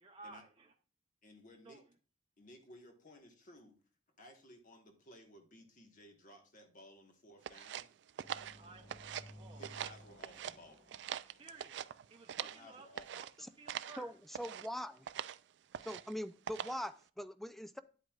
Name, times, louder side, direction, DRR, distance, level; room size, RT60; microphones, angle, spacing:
voice 1, 0.0-0.7 1.7-1.8 8.4-9.6 11.4-11.8 12.1-12.9 13.1-13.2 13.6-14.1, right 3 dB, 30° right, 0.7 m, -55 dB
voice 2, 1.2-1.9 2.4-3.8 4.2-7.9 9.6-10.8 12.4-13.3, left 1 dB, 45° left, 1.3 m, -58 dB
sound 1, 7.4-9.3 9.6-10.6 10.9-12.6 13.0-13.3 13.7-14.0 14.3-14.7 15.1-15.4 15.7-16.1 16.5-16.9, right 9 dB, 70° right, 0.3 m, -43 dB
sound 2, 8.2-12.0, equal, 75° left, 4.8 m, -57 dB
voice 3, 14.0-15.1 15.9-17.8, equal, ahead, 0.4 m, -42 dB
9.4 x 8.1 x 2.4 m
head